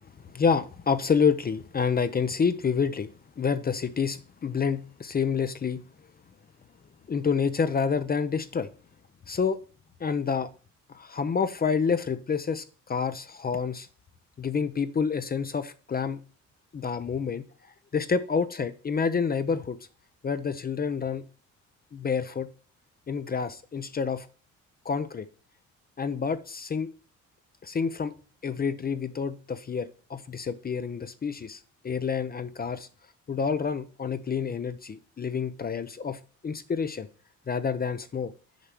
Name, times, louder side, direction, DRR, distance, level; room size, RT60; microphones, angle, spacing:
voice 1, 0.3-3.1 3.4-5.8 7.1-8.7 9.3-9.6 10.0-10.5 10.9-12.6 12.9-13.9 14.4-16.2 16.7-17.4 17.9-19.8 20.2-21.2 21.9-22.5 23.1-24.3 24.9-25.2 26.0-26.9 27.6-28.1 28.4-31.6 31.8-32.9 33.3-36.2 36.4-37.1 37.5-38.3, left 6 dB, 30° left, 11 dB, 0.6 m, -28 dB
6.6 x 4.7 x 6.0 m, 0.39 s
cardioid pair, 90°, 30 cm